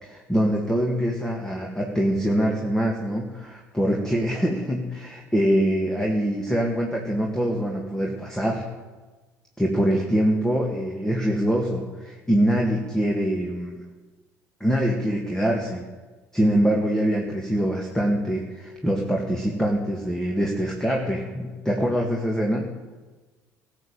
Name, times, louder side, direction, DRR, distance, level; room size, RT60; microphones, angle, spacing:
voice 1, 0.0-8.6 9.6-13.8 14.6-15.8 16.3-22.7, equal, 5° left, 0 dB, 2.2 m, -24 dB
18.5 x 7.5 x 6.9 m, 1.2 s
figure-of-eight pair, 55°, 8 cm